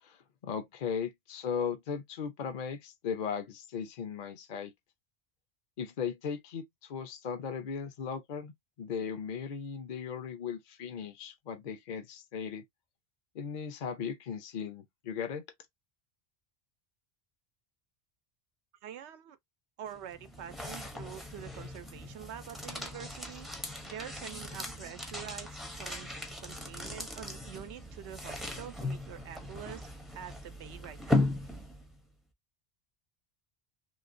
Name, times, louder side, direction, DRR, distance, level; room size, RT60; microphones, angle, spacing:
voice 1, 0.0-4.7 5.8-8.5 8.8-12.6 13.3-15.4, left 6 dB, 50° left, 0.6 m, -37 dB
voice 2, 18.8-19.4 19.8-23.5 23.8-26.1 26.4-29.9 30.1-31.3, right 10 dB, 85° right, 0.9 m, -46 dB
sound 1, 19.9-32.0, left 2 dB, ahead, 0.5 m, -37 dB
3.0 x 2.9 x 2.5 m
omnidirectional pair, 1.1 m